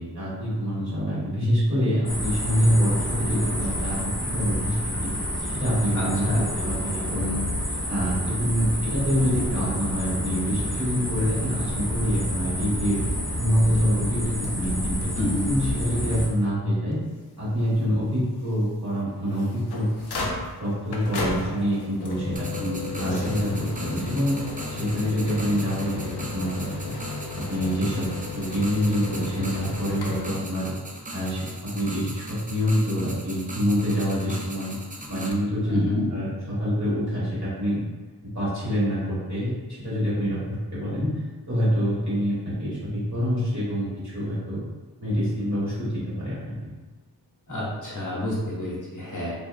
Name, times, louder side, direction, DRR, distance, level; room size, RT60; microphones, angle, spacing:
voice 1, 0.0-5.1 5.5-13.0 13.4-15.1 15.5-17.0 17.4-19.9 20.6-22.5 23.0-24.4 24.7-26.7 27.3-30.7 31.1-34.7 35.1-35.8 36.1-37.8 38.2-41.2 41.5-44.6 45.0-46.5, equal, 45° right, -10 dB, 1.4 m, -26 dB
sound 1, 2.1-16.3, equal, ahead, 0.7 m, -29 dB
voice 2, 5.9-6.4 15.2-15.5 22.6-23.2 35.7-36.1 47.5-49.3, left 1 dB, 50° left, -5 dB, 0.9 m, -29 dB
sound 2, 14.4-15.4 15.8-15.9 16.2-16.3 16.9-17.0 19.1-30.3, left 3 dB, 80° left, 0.5 m, -34 dB
sound 3, 22.4-35.3, right 1 dB, 25° right, 0.3 m, -39 dB
2.8 x 2.3 x 2.4 m, 1.2 s
wide cardioid pair, 50°, 39 cm